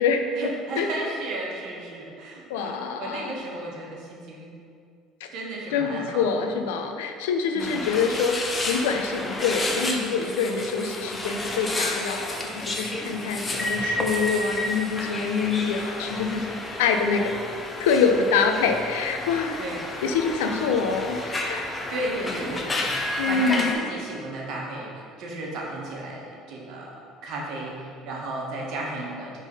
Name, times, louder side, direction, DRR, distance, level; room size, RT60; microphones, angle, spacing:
voice 1, 0.4-4.5 5.3-6.3 7.5-7.8 19.6-19.8 21.9-22.9 23.2-27.0 27.2-29.4, right 2 dB, 65° right, -2 dB, 1.3 m, -34 dB
voice 2, 2.5-3.4 5.2-5.3 5.7-17.3 17.8-19.6 20.0-21.2 21.5-21.7 23.2-23.8, left 5 dB, 90° left, 5 dB, 0.5 m, -25 dB
sound 1, 7.6-23.7, left 1 dB, 20° left, 0.8 m, -31 dB
4.9 x 3.7 x 5.3 m, 2.4 s
supercardioid pair, 90°, 0 cm